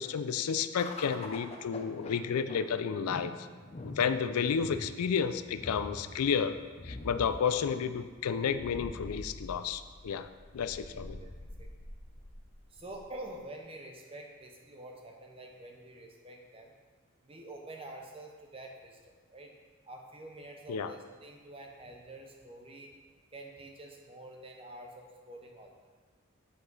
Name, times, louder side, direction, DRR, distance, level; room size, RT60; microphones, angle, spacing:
voice 1, 0.0-3.3 3.8-6.5 6.8-10.3 10.5-11.2 20.7-20.9, left 6 dB, 85° left, 11 dB, 0.4 m, -31 dB
sound 1, 0.8-13.4, left 2 dB, 25° left, 0.5 m, -45 dB
voice 2, 12.7-16.7 17.2-19.0 19.3-19.5 19.8-22.9 23.3-25.8, right 1 dB, 25° right, 1 dB, 0.8 m, -47 dB
8.1 x 4.9 x 4.0 m, 1.5 s
head